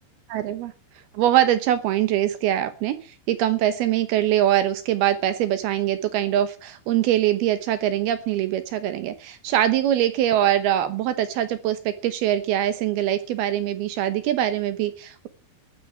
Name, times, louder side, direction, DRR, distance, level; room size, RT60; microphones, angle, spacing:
voice 1, 0.3-0.7 1.1-3.0 3.3-15.3, right 12 dB, 75° right, 12 dB, 2.3 m, -23 dB
12.5 x 8.2 x 8.4 m, 0.38 s
omnidirectional pair, 5.7 m